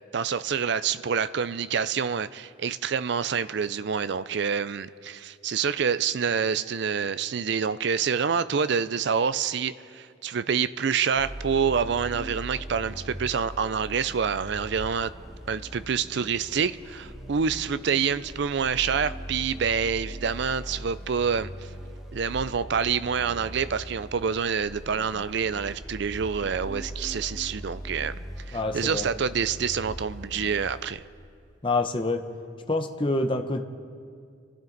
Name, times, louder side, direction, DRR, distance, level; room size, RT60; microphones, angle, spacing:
voice 1, 0.1-15.1 15.5-21.7 22.1-28.2 28.5-31.0, right 6 dB, 55° right, 15 dB, 0.4 m, -27 dB
sound 1, 11.1-30.9, equal, 5° right, 1.4 m, -40 dB
voice 2, 28.5-29.1 31.6-32.2 32.7-33.7, left 2 dB, 25° left, 5 dB, 0.8 m, -26 dB
27.0 x 12.5 x 4.0 m, 2.3 s
head